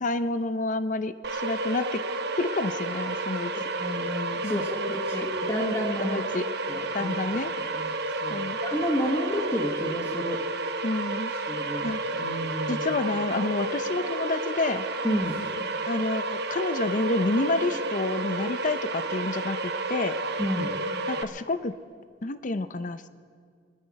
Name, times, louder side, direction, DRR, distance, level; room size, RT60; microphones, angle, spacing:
voice 1, 0.0-2.0 2.4-3.5 4.4-4.6 6.0-6.4 6.9-7.5 8.3-8.6 10.8-11.3 11.8-12.0 12.7-14.9 15.9-20.1 21.1-21.7 22.2-23.0, left 2 dB, 45° left, 12 dB, 0.6 m, -29 dB
sound 1, 1.2-21.2, right 2 dB, 65° right, 0.9 m, -31 dB
voice 2, 3.5-6.2 6.7-7.4 7.7-7.9 8.2-10.4 11.3-12.9 15.0-15.4 20.4-20.7, equal, 15° left, -3 dB, 1.4 m, -31 dB
25.0 x 11.0 x 4.8 m, 2.1 s
head